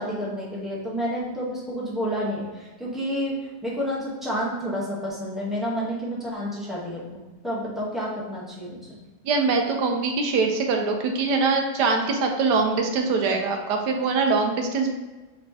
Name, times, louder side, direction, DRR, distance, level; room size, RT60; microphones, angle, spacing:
voice 1, 0.0-3.4 3.6-9.0, equal, ahead, -7 dB, 0.3 m, -30 dB
voice 2, 9.2-14.9, right 4 dB, 75° right, 4 dB, 1.1 m, -23 dB
5.1 x 3.5 x 2.7 m, 1.2 s
omnidirectional pair, 1.9 m